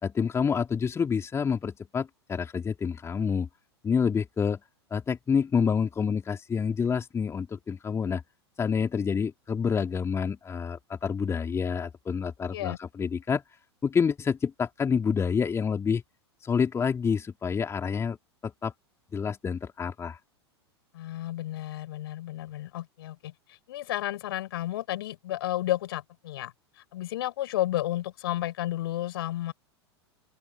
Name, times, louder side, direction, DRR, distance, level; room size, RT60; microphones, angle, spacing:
voice 1, 0.0-3.5 3.8-4.6 4.9-8.2 8.6-13.4 13.8-16.0 16.4-18.2 18.4-18.7 19.1-20.2, left 6 dB, 20° left, 3.4 m, -28 dB
voice 2, 20.9-23.3 23.7-26.5 26.9-29.5, left 14 dB, 60° left, 5.1 m, -32 dB
open air
figure-of-eight pair, 90°, 14 cm